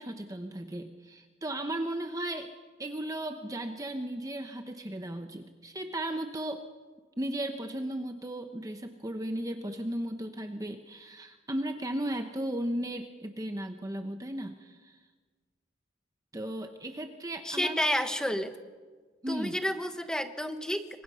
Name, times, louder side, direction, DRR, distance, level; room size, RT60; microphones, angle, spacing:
voice 1, 0.0-2.5 2.8-6.6 7.2-15.0 16.3-17.8 19.2-19.6, right 1 dB, 20° right, 6 dB, 0.9 m, -35 dB
voice 2, 17.4-18.6 19.3-21.0, equal, 5° left, 7 dB, 1.2 m, -30 dB
27.5 x 24.0 x 5.6 m, 1.5 s
head